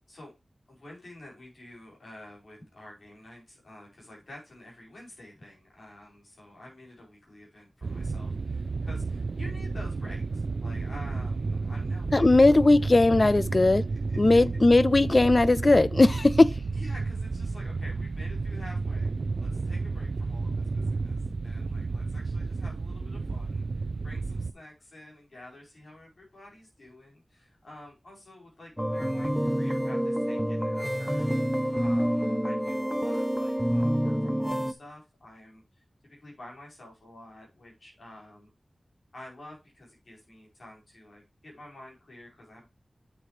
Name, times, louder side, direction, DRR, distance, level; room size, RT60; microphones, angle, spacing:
voice 1, 0.7-12.5 13.5-13.6 13.9-14.2 16.8-19.1 19.4-35.8 36.1-38.5 39.1-42.7, left 1 dB, 70° left, 4.8 m, -49 dB
sound 1, 7.8-24.5, right 3 dB, 75° right, 0.4 m, -31 dB
voice 2, 12.1-13.9 14.1-16.6, left 2 dB, 40° left, 0.3 m, -19 dB
sound 2, 28.8-34.7, equal, 5° right, 0.7 m, -27 dB
8.3 x 6.9 x 3.2 m
wide cardioid pair, 75°, 0 cm